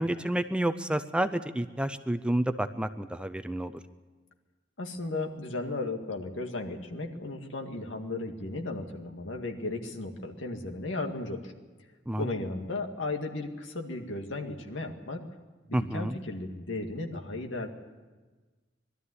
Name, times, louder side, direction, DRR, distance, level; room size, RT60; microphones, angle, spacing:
voice 1, 0.0-3.7 12.1-12.3 15.7-16.1, right 1 dB, 5° right, 10 dB, 0.6 m, -29 dB
voice 2, 4.8-11.5 12.2-15.2 15.7-17.7, left 2 dB, 80° left, 3 dB, 2.1 m, -35 dB
21.5 x 13.0 x 9.7 m, 1.3 s
head